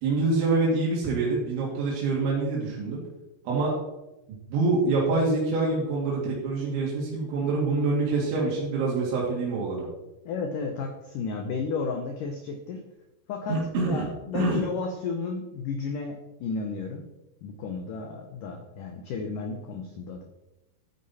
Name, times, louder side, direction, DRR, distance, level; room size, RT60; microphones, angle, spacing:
voice 1, 0.0-3.0 3.4-3.7 4.5-9.9 13.5-14.1 14.3-14.6, right 3 dB, 85° right, -4 dB, 4.8 m, -26 dB
voice 2, 10.3-12.8 13.3-13.6 13.8-17.0 17.4-20.2, left 4 dB, 75° left, 5 dB, 2.0 m, -33 dB
13.0 x 9.5 x 4.2 m, 0.96 s
omnidirectional pair, 5.2 m